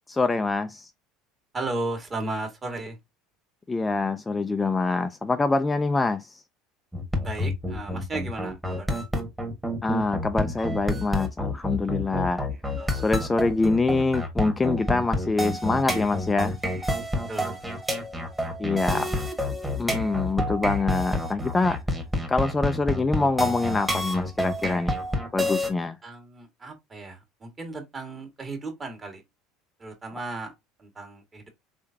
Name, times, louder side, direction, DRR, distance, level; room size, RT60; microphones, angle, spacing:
voice 1, 0.1-0.9 3.7-6.4 9.8-12.5 12.9-16.6 18.6-19.2 19.8-21.8 22.3-25.0 25.3-26.0, left 3 dB, 20° left, 0.4 m, -25 dB
voice 2, 1.5-3.0 7.2-9.0 12.1-12.9 17.3-17.6 18.8-19.1 26.0-29.2 29.8-30.5 30.8-31.5, right 2 dB, 30° right, 1.8 m, -35 dB
sound 1, 6.9-25.7, left 1 dB, 10° right, 1.4 m, -28 dB
3.7 x 3.4 x 2.7 m
hypercardioid pair, 75°, 0 cm